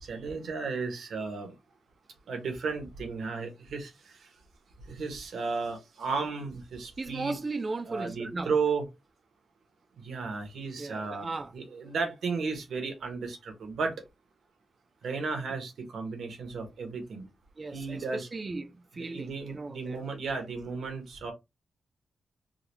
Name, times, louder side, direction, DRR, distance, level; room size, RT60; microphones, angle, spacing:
voice 1, 0.0-1.5 2.3-4.3 4.9-7.4 7.8-8.8 10.0-11.3 11.5-13.9 15.0-17.3 17.7-18.3 18.9-21.3, right 4 dB, 80° right, 1.3 m, -34 dB
voice 2, 7.0-8.5 10.8-11.5 17.6-20.0, right 3 dB, 30° right, 0.6 m, -37 dB
3.8 x 2.4 x 3.1 m
wide cardioid pair, 135°, 0 cm